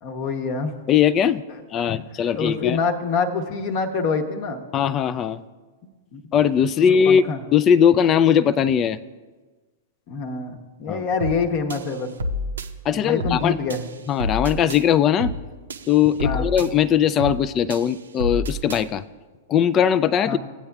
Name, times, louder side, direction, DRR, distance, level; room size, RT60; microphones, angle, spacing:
voice 1, 0.0-0.8 1.8-1.9 2.3-4.6 6.1-6.2 6.8-7.4 10.1-12.1 12.9-13.8 16.2-16.5 20.2-20.4, left 4 dB, 45° left, 5 dB, 0.9 m, -26 dB
voice 2, 0.9-1.4 1.7-2.8 4.7-5.4 6.3-7.2 7.5-9.0 10.9-11.1 12.9-13.5 14.1-15.3 15.9-19.0 19.5-20.4, left 8 dB, 30° left, 17 dB, 0.3 m, -19 dB
sound 1, 11.2-11.4 11.7-12.7 13.2-13.4 13.7-14.8 15.2-15.4 15.7-16.7 17.2-17.4 17.7-18.8, left 1 dB, 70° right, 0.7 m, -29 dB
17.0 x 8.6 x 2.3 m, 1.3 s
figure-of-eight pair, 105°, 0 cm